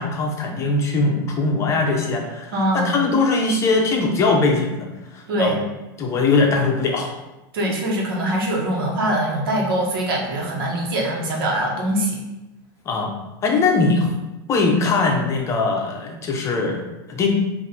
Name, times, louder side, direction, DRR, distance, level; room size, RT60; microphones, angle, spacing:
voice 1, 0.0-4.9 5.1-5.6 6.0-7.2 12.9-13.1 13.4-14.1 14.5-17.3, left 3 dB, 25° left, 1 dB, 0.6 m, -21 dB
voice 2, 2.5-3.1 5.3-5.6 7.5-12.2, right 1 dB, 85° right, -1 dB, 1.1 m, -23 dB
3.9 x 2.5 x 4.2 m, 1.0 s
supercardioid pair, 150°, 12 cm